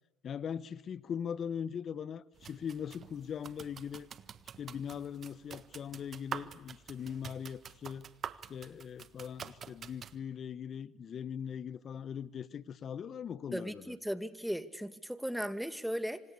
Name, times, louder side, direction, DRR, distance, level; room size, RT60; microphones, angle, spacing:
voice 1, 0.2-4.1 4.6-8.1 8.5-14.0, left 8 dB, 50° left, 1.3 m, -40 dB
sound 1, 2.4-10.2, right 7 dB, 45° right, 1.6 m, -47 dB
voice 2, 13.5-16.2, equal, ahead, 2.3 m, -37 dB
27.0 x 26.0 x 8.5 m
supercardioid pair, 85°, 0 cm